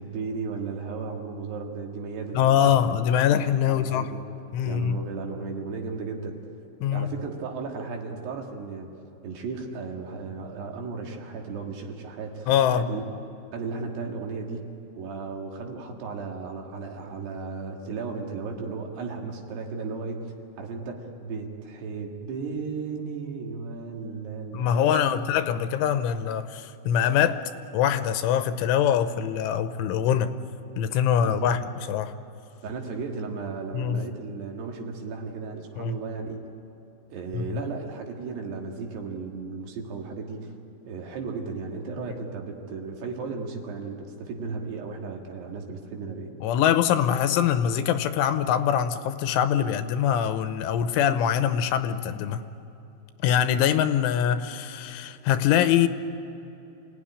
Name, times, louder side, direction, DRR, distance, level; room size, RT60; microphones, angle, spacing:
voice 1, 0.0-2.7 3.6-4.2 4.6-6.4 6.9-8.9 9.2-13.0 13.5-14.7 15.0-25.4 31.2-31.5 32.6-36.4 37.1-40.5 40.9-46.3, right 4 dB, 65° right, 2 dB, 3.8 m, -35 dB
voice 2, 2.3-4.1 4.5-5.0 6.8-7.1 12.5-12.9 24.5-27.4 27.7-30.3 30.8-32.1 33.7-34.1 35.8-36.0 37.3-37.6 46.4-52.4 53.2-55.9, left 9 dB, 85° left, 10 dB, 3.3 m, -23 dB
27.5 x 17.5 x 10.0 m, 2.9 s
omnidirectional pair, 5.5 m